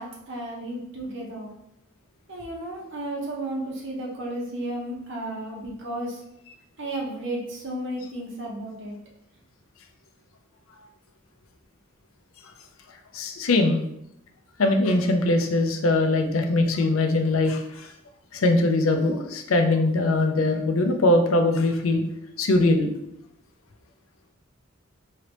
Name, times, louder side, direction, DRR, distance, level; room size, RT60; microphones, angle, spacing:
voice 1, 0.0-1.5 2.3-6.2 6.8-8.9, right 1 dB, 60° right, -2 dB, 1.0 m, -33 dB
voice 2, 13.1-13.8 14.6-17.9 18.3-22.0 22.4-22.9, left 2 dB, 90° left, 5 dB, 0.5 m, -21 dB
3.9 x 3.3 x 3.0 m, 0.78 s
head